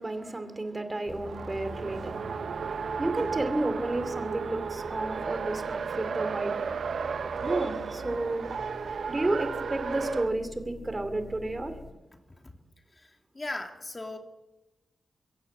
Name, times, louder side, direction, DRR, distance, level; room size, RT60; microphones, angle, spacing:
voice 1, 0.0-2.2 3.0-6.6 7.4-8.5 9.1-11.8, right 2 dB, 25° right, 9 dB, 2.7 m, -31 dB
sound 1, 1.1-11.9, left 3 dB, 50° left, 2.3 m, -46 dB
Race car auto racing, 1.1-10.3, right 6 dB, 80° right, 0.8 m, -34 dB
voice 2, 12.1-12.5 12.9-14.2, left 2 dB, 30° left, 4 dB, 2.6 m, -39 dB
22.5 x 17.0 x 8.0 m, 1.0 s
wide cardioid pair, 80°, 0 cm